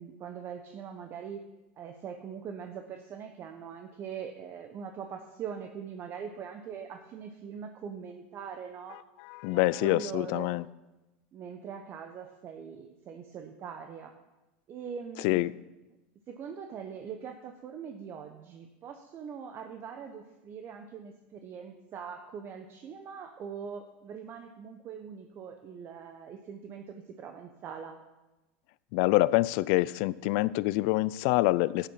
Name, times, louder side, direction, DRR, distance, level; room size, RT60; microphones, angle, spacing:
voice 1, 0.0-1.4 1.8-9.0 9.5-10.6 11.3-14.1 14.7-15.4 16.3-28.0, right 7 dB, 35° right, 5 dB, 1.0 m, -42 dB
voice 2, 9.2-10.7 15.2-15.5 28.9-31.9, left 19 dB, 60° left, 19 dB, 0.4 m, -26 dB
12.0 x 9.1 x 5.7 m, 1.0 s
supercardioid pair, 120°, 7 cm